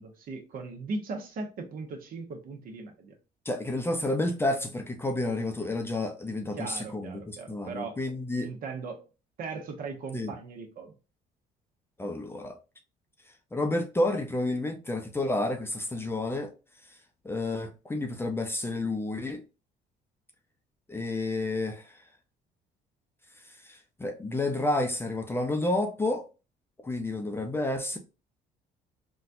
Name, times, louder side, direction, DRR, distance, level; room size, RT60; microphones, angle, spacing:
voice 1, 0.0-3.1 6.5-8.0 8.4-9.0 9.4-10.9, right 4 dB, 55° right, 0.9 m, -38 dB
voice 2, 3.5-8.5 10.1-10.3 12.0-12.6 13.5-16.5 17.2-19.4 20.9-21.9 23.6-26.3 26.8-28.0, left 2 dB, 15° left, 0.5 m, -30 dB
4.0 x 2.3 x 2.6 m
cardioid pair, 110°, 17 cm